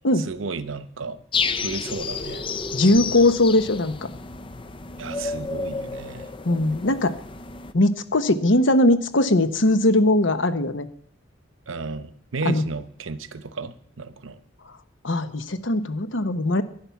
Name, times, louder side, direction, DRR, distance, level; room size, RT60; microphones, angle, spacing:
voice 1, 0.1-1.2 1.6-2.5 2.9-3.1 5.0-6.3 11.7-14.4, right 4 dB, 85° right, 13 dB, 0.8 m, -33 dB
sound 1, 1.3-7.7, left 5 dB, 25° left, 0.5 m, -31 dB
voice 2, 2.7-3.9 6.4-7.2 7.7-10.9 12.4-12.6 15.0-16.6, left 1 dB, 75° left, 11 dB, 1.0 m, -20 dB
11.5 x 9.8 x 5.9 m, 0.65 s
head